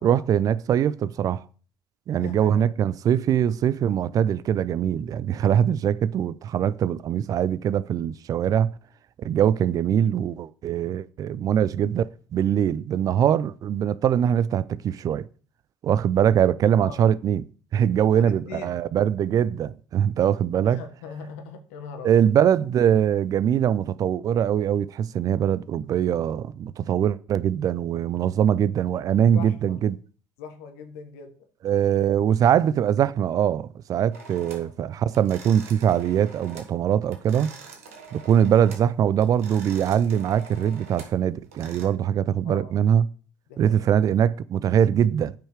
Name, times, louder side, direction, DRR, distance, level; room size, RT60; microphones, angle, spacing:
voice 1, 0.0-1.4 2.1-8.7 9.2-15.3 15.8-17.5 17.7-20.8 22.0-30.0 31.6-37.5 38.1-43.1 43.6-45.3, right 9 dB, 50° right, 0.5 m, -22 dB
voice 2, 2.1-2.7 16.8-17.0 18.1-18.8 20.6-22.2 29.2-29.8 30.4-31.3 34.6-34.7 42.4-42.7 43.5-43.9, left 5 dB, 75° left, 1.5 m, -40 dB
sound 1, 34.1-34.7 35.1-36.8 37.0-38.9 39.2-41.9, right 4 dB, 85° right, 1.6 m, -45 dB
9.0 x 5.5 x 4.9 m
hypercardioid pair, 55°, 8 cm